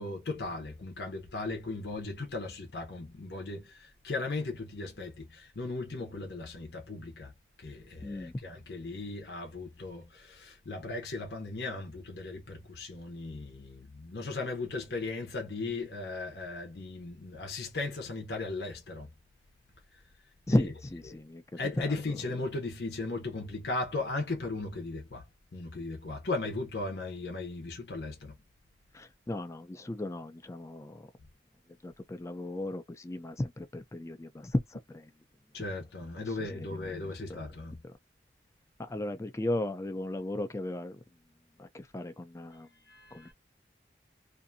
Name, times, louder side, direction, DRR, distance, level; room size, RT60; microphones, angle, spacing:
voice 1, 0.0-7.3 7.6-19.1 20.5-20.6 21.1-21.2 21.6-25.2 25.5-28.3 35.5-37.8 42.9-43.3, left 3 dB, 70° left, 0.8 m, -37 dB
voice 2, 8.0-8.3 20.5-22.2 28.9-31.1 31.8-35.0 36.2-36.8 37.3-37.4 37.8-37.9 38.8-41.0 41.6-42.7 43.1-43.3, left 1 dB, 15° left, 0.4 m, -35 dB
2.6 x 2.3 x 2.6 m
head